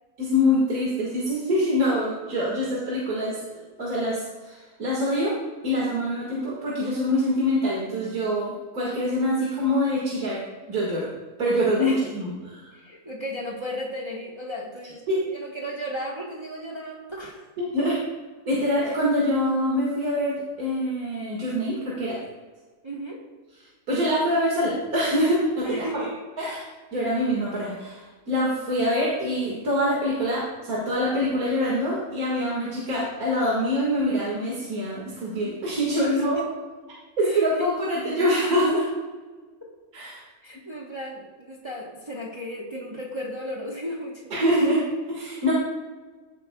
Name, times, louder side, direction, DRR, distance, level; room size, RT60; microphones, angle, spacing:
voice 1, 0.2-5.3 5.6-10.4 10.7-11.1 11.4-12.7 15.1-15.2 17.6-18.0 18.5-22.1 23.9-26.1 26.4-26.6 26.9-36.4 37.2-38.9 39.9-40.2 44.3-45.5, equal, 85° right, -5 dB, 2.4 m, -25 dB
voice 2, 12.7-17.5 22.8-23.2 25.6-26.1 36.0-36.4 37.2-37.7 40.4-44.3, equal, 20° right, -3 dB, 1.1 m, -35 dB
15.5 x 8.3 x 2.3 m, 1.4 s
omnidirectional pair, 1.5 m